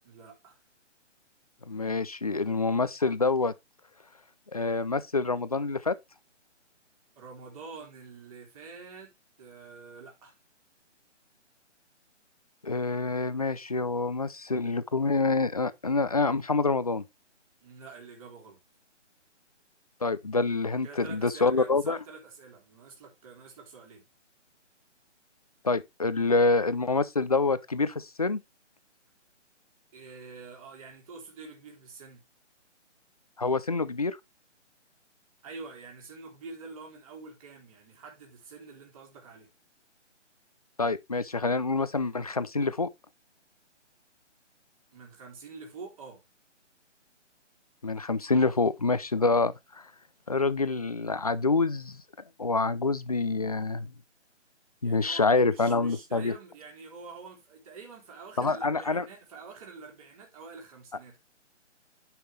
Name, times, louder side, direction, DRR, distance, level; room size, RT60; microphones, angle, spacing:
voice 1, 0.0-0.6 7.2-9.1 9.4-10.3 17.6-18.6 20.8-24.0 29.9-32.2 35.4-39.5 44.9-46.2 54.8-61.2, right 4 dB, 30° right, 3.7 m, -46 dB
voice 2, 1.7-3.5 4.5-5.9 12.6-17.0 20.0-22.0 25.6-28.4 33.4-34.2 40.8-42.9 47.8-49.5 50.3-52.0 52.4-53.9 54.8-56.3 58.4-59.0, left 3 dB, 30° left, 0.4 m, -26 dB
11.0 x 5.7 x 3.2 m
hypercardioid pair, 160°, 37 cm